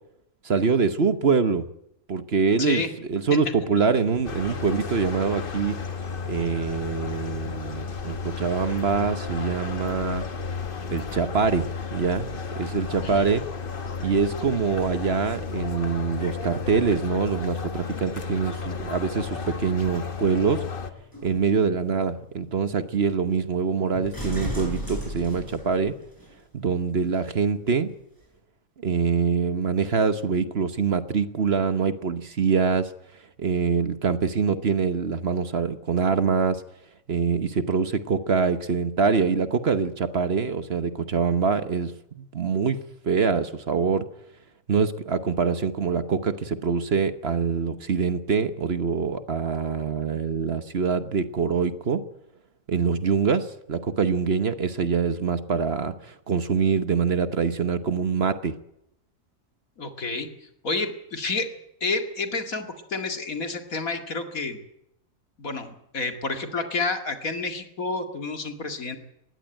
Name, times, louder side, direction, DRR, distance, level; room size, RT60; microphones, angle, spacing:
voice 1, 0.4-1.7 2.1-5.8 6.3-10.2 10.9-13.4 14.0-20.6 21.2-26.0 26.5-27.9 28.8-32.9 33.4-36.6 37.1-42.8 43.0-44.1 44.7-52.0 52.7-58.6, right 5 dB, 50° right, 11 dB, 1.2 m, -24 dB
voice 2, 2.6-2.9 13.0-13.3 59.8-60.3 60.6-61.5 61.8-64.6 65.4-69.0, left 3 dB, 75° left, 6 dB, 2.7 m, -29 dB
sound 1, 4.2-20.9, left 5 dB, 40° left, 1.4 m, -33 dB
sound 2, 21.0-26.3 27.1-27.2, equal, 15° left, 7.9 m, -37 dB
20.0 x 16.0 x 9.0 m, 0.80 s
omnidirectional pair, 1.5 m